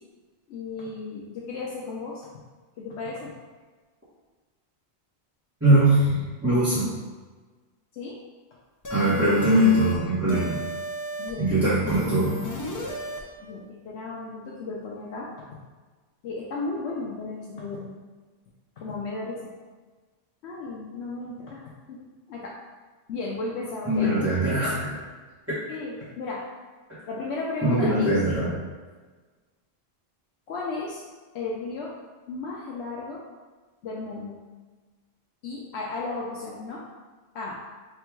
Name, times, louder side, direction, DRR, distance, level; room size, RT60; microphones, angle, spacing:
voice 1, 0.5-2.3 2.8-3.3 7.9-8.2 11.2-11.5 13.4-15.3 16.2-17.9 18.8-19.4 20.4-22.0 22.3-22.6 23.1-24.1 25.7-26.5 27.1-28.1 30.5-31.0 31.3-31.9 32.3-33.2 33.8-34.4 35.4-36.8 37.3-37.6, left 3 dB, 80° left, -4 dB, 0.9 m, -34 dB
voice 2, 5.6-6.9 8.9-10.6 11.4-12.4 23.9-25.0 27.6-28.5, right 1 dB, 15° right, -12 dB, 0.9 m, -21 dB
sound 1, 8.8-10.0 10.3-11.3 11.9-13.2, right 1 dB, 25° left, 0.4 m, -34 dB
3.7 x 2.3 x 4.4 m, 1.4 s
omnidirectional pair, 1.1 m